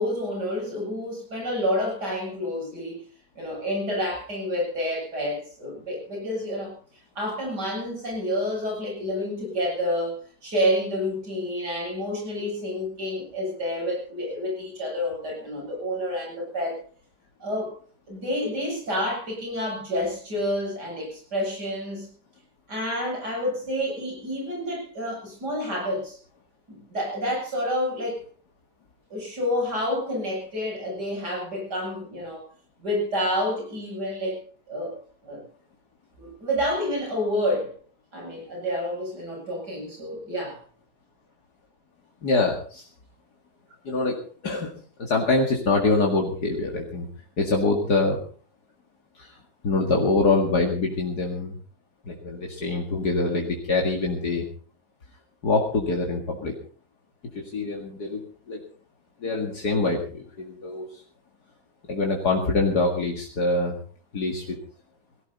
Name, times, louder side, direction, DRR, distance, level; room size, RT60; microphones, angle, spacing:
voice 1, 0.0-3.0 3.4-6.7 7.2-16.8 17.4-17.8 18.1-22.1 22.7-26.2 26.7-28.2 29.1-32.4 32.8-34.4 34.7-35.0 35.2-35.4 36.2-37.7 38.1-40.6, equal, 80° right, 0 dB, 8.6 m, -29 dB
voice 2, 42.2-42.9 43.8-44.7 45.0-47.1 47.4-48.2 49.2-49.3 49.6-51.5 52.1-54.5 55.4-56.6 57.3-58.6 59.2-61.0 61.9-63.8 64.1-64.6, left 3 dB, 70° left, 0 dB, 2.6 m, -25 dB
18.5 x 16.5 x 4.1 m, 0.42 s
omnidirectional pair, 1.8 m